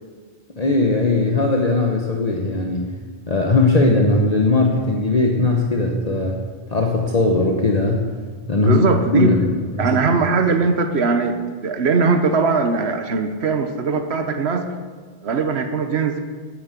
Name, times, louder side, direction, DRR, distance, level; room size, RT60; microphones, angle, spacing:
voice 1, 0.6-2.9 3.3-6.4 6.7-8.1 8.5-8.8 9.1-10.2, left 2 dB, 40° left, 1 dB, 1.2 m, -19 dB
voice 2, 8.7-9.3 9.8-14.7 15.2-16.2, right 4 dB, 90° right, 6 dB, 1.2 m, -20 dB
9.5 x 9.4 x 8.3 m, 1.6 s
omnidirectional pair, 1.0 m